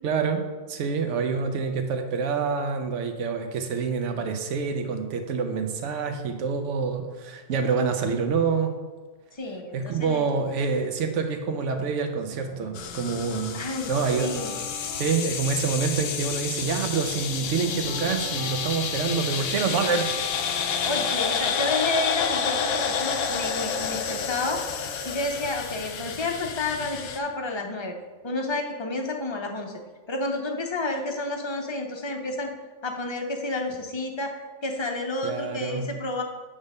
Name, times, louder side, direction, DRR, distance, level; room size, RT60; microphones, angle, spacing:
voice 1, 0.0-8.8 9.7-13.6 13.9-14.3 15.0-20.1 35.2-35.9, right 5 dB, 70° right, 6 dB, 1.1 m, -27 dB
voice 2, 9.3-10.3 13.5-14.5 20.8-24.6 25.0-27.9 28.2-29.7 30.1-32.5 32.8-36.2, left 2 dB, 30° left, 3 dB, 0.6 m, -30 dB
sound 1, 12.3-25.0, left 4 dB, 50° left, 1.0 m, -42 dB
sound 2, 12.8-27.2, left 6 dB, 75° left, 1.0 m, -30 dB
8.6 x 3.5 x 5.3 m, 1.3 s
omnidirectional pair, 1.3 m